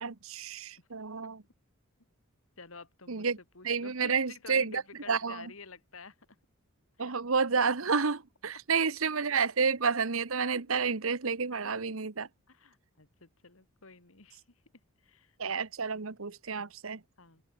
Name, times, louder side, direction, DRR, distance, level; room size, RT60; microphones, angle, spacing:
voice 1, 0.0-1.4 3.1-3.4 3.6-5.5 7.0-12.3 15.4-17.0, right 5 dB, 70° right, 1.1 m, -30 dB
voice 2, 2.6-3.3 3.5-6.2 7.0-7.1 11.5-11.7 12.5-14.4 15.0-15.3 17.2-17.4, left 4 dB, 65° left, 2.4 m, -50 dB
head